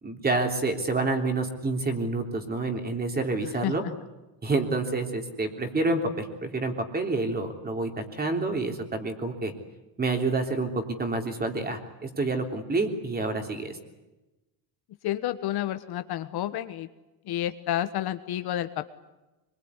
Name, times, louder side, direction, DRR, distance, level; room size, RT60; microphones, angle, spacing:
voice 1, 0.0-3.8 4.4-9.5 10.0-13.8, right 3 dB, 20° right, 5 dB, 3.4 m, -28 dB
voice 2, 15.0-16.9 17.3-18.8, left 12 dB, 50° left, 10 dB, 1.4 m, -30 dB
24.0 x 22.5 x 9.8 m, 1.1 s
cardioid pair, 150°, 47 cm